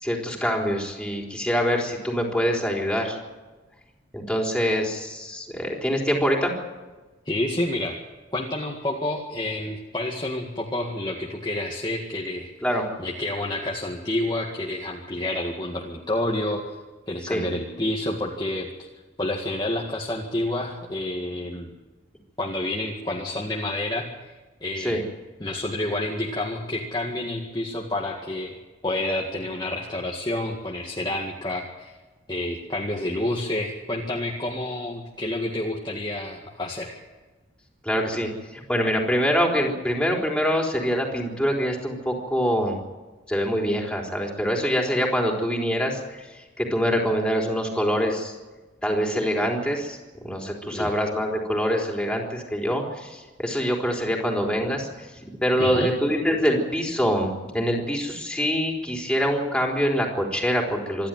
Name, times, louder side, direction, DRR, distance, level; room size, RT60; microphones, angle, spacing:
voice 1, 0.0-3.2 4.1-6.5 12.6-12.8 17.3-17.4 24.8-25.0 37.8-42.8 43.3-46.2 46.6-48.3 48.8-54.9 55.2-61.1, equal, 5° left, 0 dB, 4.0 m, -25 dB
voice 2, 7.3-8.0 8.3-16.8 17.1-18.9 19.2-21.7 22.4-24.3 24.6-25.0 25.4-28.5 28.8-32.0 32.3-37.0 50.7-50.9 55.6-55.9, left 1 dB, 25° left, -2 dB, 1.9 m, -29 dB
26.5 x 12.0 x 9.2 m, 1.2 s
head